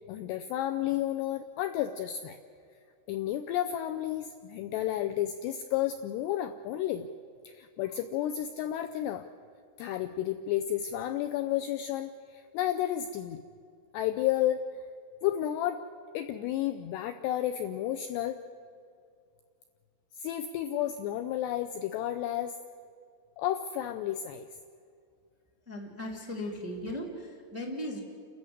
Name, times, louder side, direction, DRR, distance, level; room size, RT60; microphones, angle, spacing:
voice 1, 0.1-2.4 3.1-7.1 7.5-9.3 9.8-13.4 13.9-14.8 15.2-15.8 16.1-18.4 20.1-22.6 23.4-24.5, left 12 dB, 80° left, 8 dB, 2.5 m, -32 dB
voice 2, 25.6-28.0, left 1 dB, 5° right, -1 dB, 1.8 m, -37 dB
29.5 x 13.5 x 8.1 m, 2.3 s
omnidirectional pair, 5.4 m